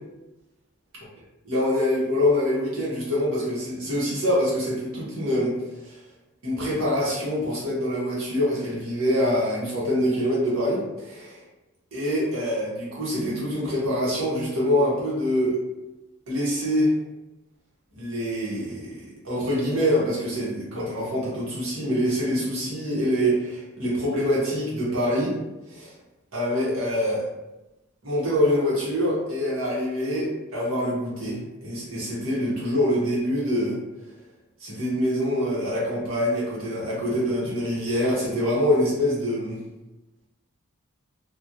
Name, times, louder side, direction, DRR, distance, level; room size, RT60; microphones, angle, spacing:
voice 1, 1.4-5.5 5.8-6.0 6.4-11.4 11.9-15.6 16.3-16.9 17.9-25.3 25.7-25.9 26.3-27.3 28.0-33.8 34.6-39.6, equal, 85° right, -6 dB, 1.2 m, -25 dB
3.0 x 2.4 x 2.5 m, 1.0 s
head